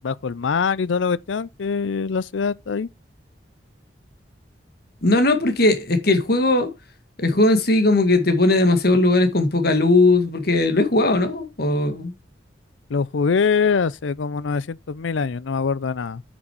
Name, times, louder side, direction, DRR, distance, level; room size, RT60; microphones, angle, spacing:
voice 1, 0.0-2.9 12.9-16.2, left 5 dB, 80° left, 0.5 m, -23 dB
voice 2, 5.0-6.7 7.2-12.1, left 2 dB, 55° left, 1.8 m, -18 dB
8.1 x 6.2 x 4.6 m
head